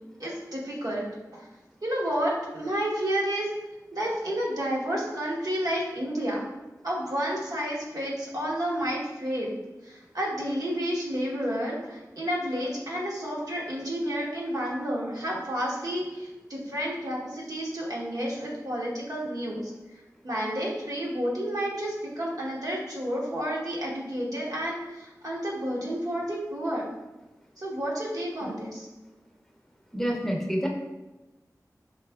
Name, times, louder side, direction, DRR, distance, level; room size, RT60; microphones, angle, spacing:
voice 1, 0.2-1.1 1.3-1.5 1.8-3.5 3.9-6.4 6.8-9.5 9.8-19.7 20.2-26.8 27.6-28.9, equal, 70° right, -4 dB, 1.1 m, -30 dB
voice 2, 29.9-30.7, equal, 5° left, -1 dB, 0.6 m, -28 dB
4.8 x 3.7 x 2.3 m, 1.1 s
wide cardioid pair, 70°, 6 cm